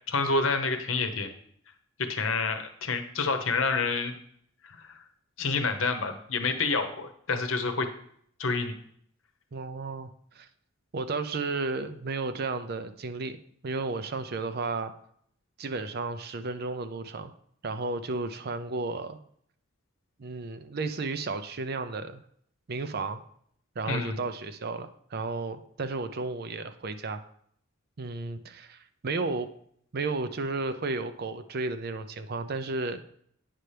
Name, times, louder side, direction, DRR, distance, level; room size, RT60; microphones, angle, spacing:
voice 1, 0.1-1.3 2.0-4.1 4.6-5.0 5.4-7.9 8.4-8.7 23.9-24.2, left 4 dB, 70° left, 7 dB, 0.9 m, -28 dB
voice 2, 9.5-10.5 10.9-13.4 13.6-14.9 15.6-17.3 17.6-19.2 20.2-22.2 22.7-23.2 23.8-27.2 28.0-29.5 29.9-33.0, right 3 dB, 50° right, 10 dB, 0.5 m, -33 dB
9.1 x 5.6 x 3.3 m, 0.65 s
head